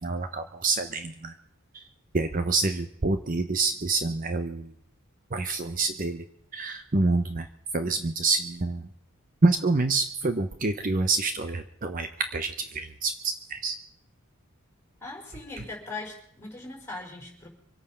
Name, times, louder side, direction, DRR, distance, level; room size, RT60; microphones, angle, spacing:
voice 1, 0.0-1.3 1.7-1.8 2.1-4.7 5.3-6.2 6.5-7.5 7.7-8.8 9.4-13.8, right 3 dB, 40° right, 8 dB, 0.7 m, -27 dB
voice 2, 15.0-17.5, left 3 dB, 10° left, -1 dB, 4.6 m, -40 dB
25.0 x 8.6 x 5.7 m, 0.67 s
head